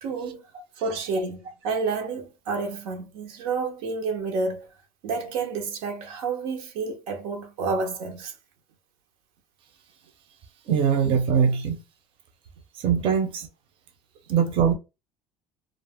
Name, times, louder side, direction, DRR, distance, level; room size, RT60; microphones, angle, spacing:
voice 1, 0.0-0.4 0.8-4.7 5.0-8.3, right 4 dB, 85° right, 0.7 m, -29 dB
voice 2, 10.7-11.8 12.8-13.5 14.3-14.7, right 7 dB, 50° right, 0.6 m, -22 dB
2.4 x 2.1 x 3.4 m
cardioid pair, 125°, 12 cm